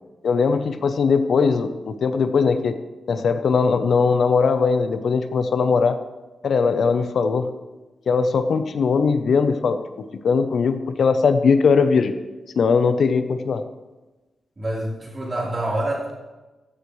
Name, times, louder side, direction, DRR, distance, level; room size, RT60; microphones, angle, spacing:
voice 1, 0.2-2.8 3.1-5.9 6.4-7.5 8.1-9.8 10.2-12.1 12.6-13.6, left 5 dB, 65° left, 9 dB, 0.8 m, -20 dB
voice 2, 14.6-16.1, right 1 dB, 30° right, -4 dB, 4.0 m, -26 dB
15.5 x 13.5 x 3.3 m, 1.1 s
wide cardioid pair, 165°, 0 cm